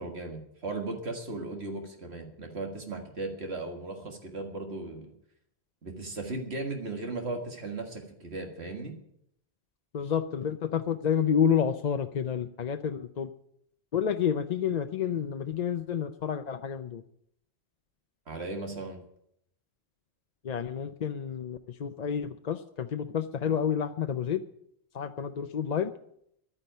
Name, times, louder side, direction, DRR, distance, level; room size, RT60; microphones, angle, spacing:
voice 1, 0.0-5.1 5.8-8.9 18.3-19.0, right 2 dB, 75° right, 3 dB, 2.1 m, -37 dB
voice 2, 9.9-13.3 13.9-17.0 20.4-24.4 24.9-25.9, left 8 dB, 50° left, 8 dB, 0.6 m, -29 dB
11.0 x 9.7 x 9.1 m, 0.73 s
omnidirectional pair, 1.1 m